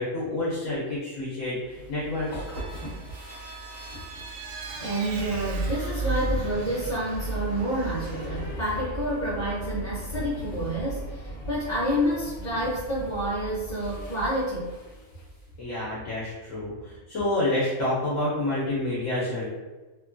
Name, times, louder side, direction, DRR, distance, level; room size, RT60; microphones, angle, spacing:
voice 1, 0.0-2.4 15.6-19.5, left 1 dB, 75° left, -7 dB, 1.1 m, -28 dB
sound 1, 1.6-15.5, right 2 dB, 20° left, 1.2 m, -36 dB
Vehicle, 2.1-8.5, right 3 dB, 90° right, 1.0 m, -43 dB
voice 2, 4.8-14.7, equal, 45° left, -11 dB, 0.7 m, -29 dB
2.8 x 2.2 x 2.4 m, 1.2 s
omnidirectional pair, 1.3 m